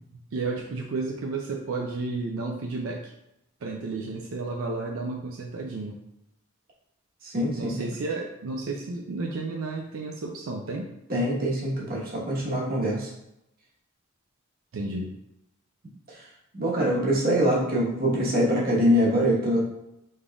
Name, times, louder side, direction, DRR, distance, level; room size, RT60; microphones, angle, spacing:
voice 1, 0.3-3.1 3.6-6.0 7.6-10.9 14.7-15.1, right 3 dB, 75° right, 1 dB, 0.5 m, -32 dB
voice 2, 7.2-7.8 11.1-13.1 16.1-16.2 16.5-19.6, equal, 45° right, -4 dB, 1.2 m, -24 dB
5.3 x 3.7 x 2.3 m, 0.85 s
head